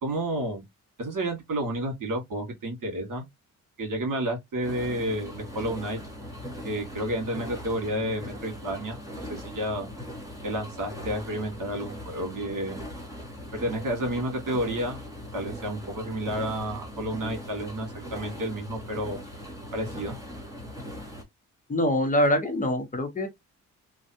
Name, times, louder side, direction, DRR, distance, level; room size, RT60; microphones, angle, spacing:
voice 1, 0.0-0.6 1.0-3.2 3.8-6.0 6.6-9.9 10.4-12.8 13.5-15.0 15.3-19.2 19.7-20.2, right 1 dB, 70° right, 1.9 m, -31 dB
sound 1, 4.6-21.2, equal, 10° right, 1.2 m, -40 dB
voice 2, 21.7-23.3, left 1 dB, 25° left, 0.9 m, -24 dB
3.2 x 2.4 x 2.7 m
cardioid pair, 105°, 33 cm